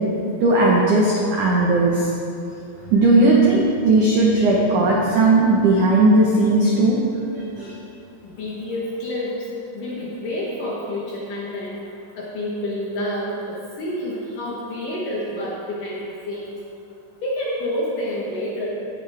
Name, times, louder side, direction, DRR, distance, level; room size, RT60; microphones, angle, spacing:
voice 1, 0.4-2.1 2.9-7.0 7.3-7.8, right 2 dB, 75° right, -4 dB, 1.8 m, -17 dB
voice 2, 8.2-9.4 9.7-11.8 12.2-16.6 17.2-18.7, left 1 dB, 65° left, -5 dB, 2.3 m, -28 dB
16.0 x 9.8 x 3.6 m, 2.6 s
omnidirectional pair, 5.4 m